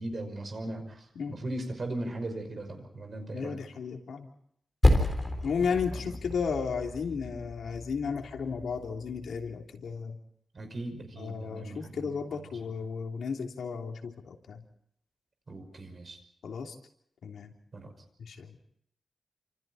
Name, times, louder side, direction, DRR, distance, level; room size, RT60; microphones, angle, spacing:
voice 1, 0.0-3.6 6.0-6.1 10.5-11.9 15.5-16.2 17.7-17.9, right 1 dB, 35° right, 6 dB, 5.6 m, -38 dB
voice 2, 3.3-4.3 5.4-10.2 11.2-14.6 16.4-16.7 17.2-17.5 18.2-18.5, left 5 dB, 75° left, 2 dB, 3.2 m, -34 dB
Percussion, 4.8-9.7, left 1 dB, 15° left, 3.9 m, -30 dB
29.0 x 27.5 x 4.3 m, 0.70 s
wide cardioid pair, 175°, 0 cm